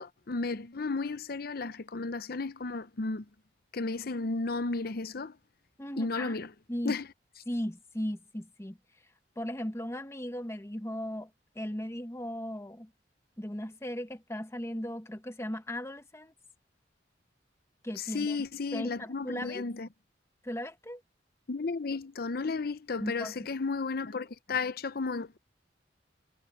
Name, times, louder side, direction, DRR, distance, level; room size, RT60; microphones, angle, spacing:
voice 1, 0.0-3.3 3.7-5.4 6.0-6.5 6.8-7.1 18.0-19.9 21.5-25.4, left 3 dB, 55° left, 0.7 m, -33 dB
voice 2, 5.8-6.4 6.7-7.0 7.5-8.8 9.4-11.3 11.5-12.9 13.4-16.3 17.8-18.4 18.7-19.6 20.4-21.0 23.0-23.5, equal, 15° left, 1.1 m, -37 dB
head